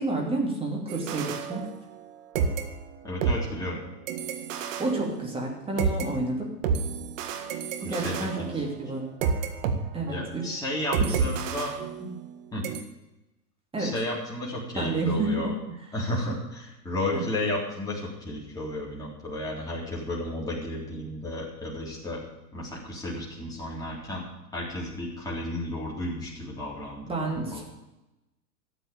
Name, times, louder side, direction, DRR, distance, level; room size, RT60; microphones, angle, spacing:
voice 1, 0.0-1.7 4.8-6.5 7.8-9.1 9.9-10.6 11.0-11.2 12.0-12.1 13.7-13.9 14.8-15.5 17.1-17.2 27.1-27.6, right 2 dB, 10° right, -1 dB, 2.8 m, -30 dB
sound 1, 0.9-2.1 2.3-6.1 6.6-9.7 10.1-10.3 10.9-12.3 12.6-12.8, right 6 dB, 50° right, 1.8 m, -30 dB
voice 2, 3.0-3.8 7.8-8.6 10.1-11.8 12.5-12.7 13.8-15.5 15.9-22.2 22.5-24.3 24.5-27.6, left 1 dB, 5° left, -5 dB, 3.8 m, -33 dB
13.0 x 8.2 x 8.7 m, 0.97 s
figure-of-eight pair, 110°, 49 cm